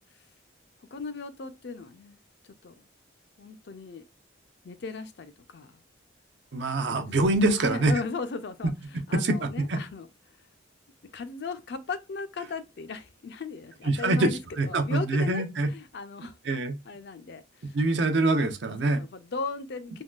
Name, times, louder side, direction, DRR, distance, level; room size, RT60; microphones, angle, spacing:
voice 1, 0.9-2.2 2.4-2.7 3.4-4.0 4.6-5.8 7.1-7.2 7.5-10.1 11.1-14.4 14.6-16.4 16.9-17.8 18.8-20.0, left 4 dB, 55° left, 0.4 m, -37 dB
voice 2, 6.5-7.9 9.1-9.8 13.8-14.3 14.6-15.7 16.4-16.8 17.7-19.0, right 2 dB, 60° right, 0.6 m, -24 dB
3.5 x 2.2 x 2.3 m
head